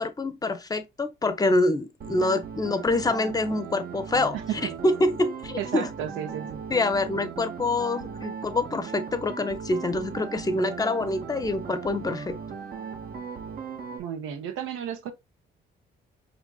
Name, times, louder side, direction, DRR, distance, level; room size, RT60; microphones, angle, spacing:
voice 1, 0.0-4.4 4.8-5.9 6.7-12.4, left 2 dB, 20° left, 0.6 m, -26 dB
sound 1, 2.0-14.0, right 6 dB, 50° right, 0.8 m, -38 dB
voice 2, 4.3-4.7 5.6-6.6 14.0-15.1, right 9 dB, 85° right, 0.6 m, -33 dB
4.8 x 2.4 x 2.3 m
cardioid pair, 90°, 20 cm